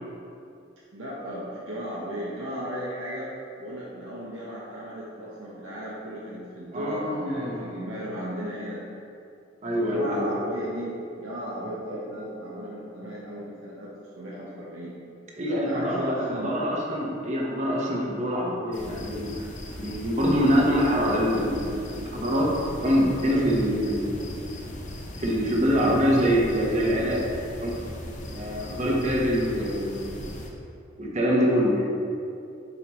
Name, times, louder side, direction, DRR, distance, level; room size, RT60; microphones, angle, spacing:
voice 1, 0.9-3.3 3.6-8.8 9.7-13.9 14.2-15.0 15.6-16.5, equal, 85° right, -8 dB, 0.9 m, -35 dB
voice 2, 6.7-7.7 9.6-10.3 15.4-16.1 16.4-19.3 19.8-24.4 25.2-27.2 27.6-27.7 28.2-30.3 31.0-31.9, equal, 40° right, -2 dB, 1.0 m, -25 dB
sound 1, 18.7-30.5, left 1 dB, 40° left, 0.7 m, -38 dB
7.1 x 4.7 x 3.0 m, 2.5 s
head